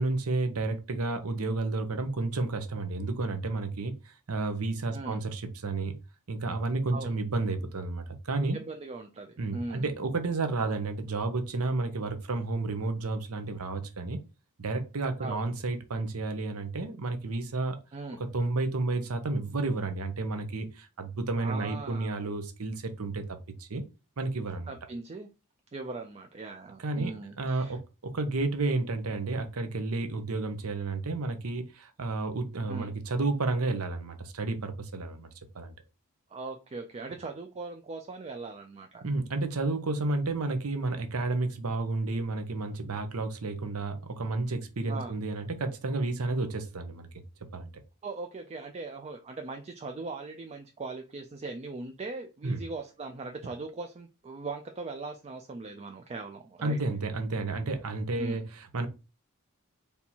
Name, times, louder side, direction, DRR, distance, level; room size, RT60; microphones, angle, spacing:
voice 1, 0.0-5.9 6.3-8.6 9.4-14.2 14.6-17.8 18.2-23.8 24.2-24.7 26.8-27.1 27.4-35.3 35.5-35.7 39.0-47.1 47.5-47.7 52.4-52.6 56.6-58.9, right 3 dB, 75° right, 0.8 m, -31 dB
voice 2, 8.5-9.8 15.2-15.4 17.9-18.2 21.4-22.2 24.7-25.3 25.7-27.8 32.7-32.9 36.3-39.0 44.9-45.2 48.0-56.8 58.2-58.4, right 3 dB, 30° right, 0.4 m, -39 dB
4.3 x 3.4 x 2.8 m
head